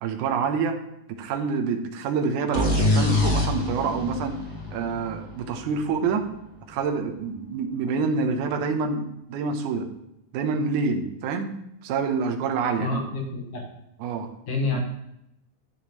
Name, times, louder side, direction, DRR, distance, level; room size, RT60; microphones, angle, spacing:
voice 1, 0.0-0.8 1.1-4.4 4.7-6.2 6.7-9.9 10.3-11.5 11.8-13.0 14.0-14.3, right 5 dB, 70° right, 4 dB, 2.2 m, -27 dB
sound 1, 2.5-6.2, left 2 dB, 35° left, 2.1 m, -25 dB
voice 2, 12.8-13.7 14.5-14.9, left 3 dB, 50° left, 1 dB, 2.3 m, -28 dB
10.5 x 10.5 x 3.1 m, 0.82 s
omnidirectional pair, 4.0 m